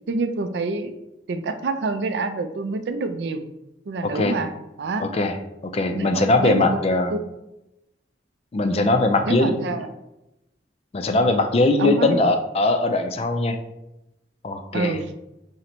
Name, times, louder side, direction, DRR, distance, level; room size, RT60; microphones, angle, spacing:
voice 1, 0.1-0.9 1.3-3.5 3.9-4.5 4.8-5.1 5.9-7.2 9.2-9.9 11.8-12.2 14.7-15.1, right 3 dB, 65° right, 8 dB, 0.4 m, -27 dB
voice 2, 4.0-4.4 5.0-5.4 5.6-7.1 8.5-9.8 10.9-13.6 14.4-15.0, left 2 dB, 35° left, 6 dB, 0.3 m, -21 dB
3.8 x 2.1 x 4.3 m, 0.90 s
head